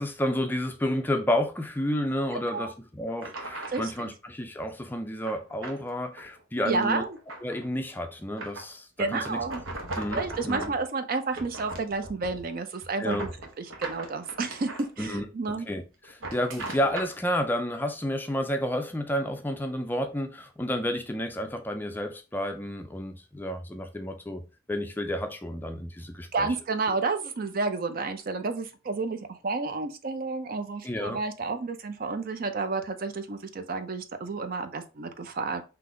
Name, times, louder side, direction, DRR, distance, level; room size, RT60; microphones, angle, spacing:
voice 1, 0.0-7.0 7.4-9.4 10.0-10.7 13.0-13.3 15.0-24.4 24.7-26.5 30.8-31.2, equal, 10° left, 0.4 m, -31 dB
voice 2, 2.3-2.7 3.7-4.1 6.7-7.2 9.0-9.6 10.1-13.3 13.6-14.7 15.0-15.7 26.3-35.6, right 3 dB, 45° right, 0.5 m, -31 dB
sound 1, 2.5-2.6 3.2-4.0 5.2-5.8 6.2-6.4 6.8-7.7 8.4-8.7 9.2-10.8 11.3-12.5 12.8-14.9 16.0-17.2, right 2 dB, 85° right, 1.0 m, -38 dB
3.9 x 2.9 x 3.7 m
head